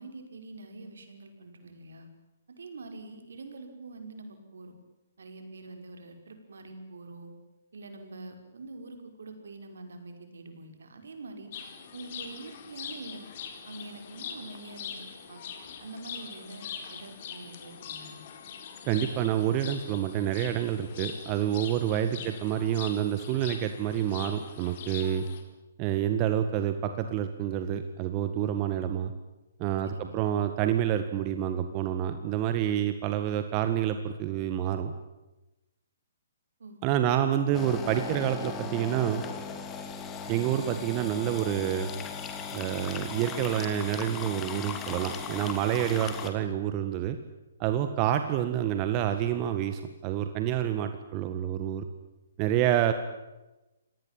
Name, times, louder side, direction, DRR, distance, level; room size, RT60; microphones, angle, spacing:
voice 1, 0.0-2.1 2.6-4.7 5.2-7.3 7.7-11.5 11.9-13.3 13.7-15.4 15.8-18.2 22.0-22.3 29.8-30.2 36.6-36.8, right 2 dB, 70° right, 6 dB, 5.5 m, -45 dB
sound 1, 11.5-25.4, left 7 dB, 45° left, 4.4 m, -43 dB
voice 2, 18.9-25.3 25.8-29.1 29.6-34.9 36.8-39.2 40.3-41.9 42.5-47.2 47.6-51.9 52.4-52.9, right 11 dB, 30° right, 8 dB, 1.8 m, -28 dB
sound 2, 37.5-46.3, left 6 dB, 20° left, 3.1 m, -38 dB
26.5 x 19.0 x 9.1 m, 1.0 s
figure-of-eight pair, 130°, 0 cm